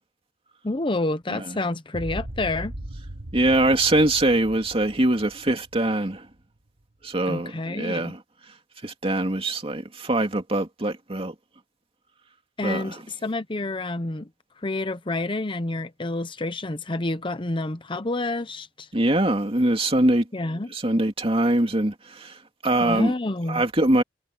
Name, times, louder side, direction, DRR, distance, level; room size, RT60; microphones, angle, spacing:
voice 1, 0.6-2.7 7.3-8.1 12.6-14.3 14.6-18.9 20.3-20.7 22.8-23.6, left 2 dB, 30° left, 0.9 m, -28 dB
sound 1, 1.9-6.3, right 1 dB, 60° right, 2.0 m, -38 dB
voice 2, 3.3-6.3 7.0-8.2 8.8-11.3 12.6-13.0 18.9-20.3 20.7-22.4 22.6-23.1 23.5-24.0, right 1 dB, 35° right, 2.6 m, -23 dB
head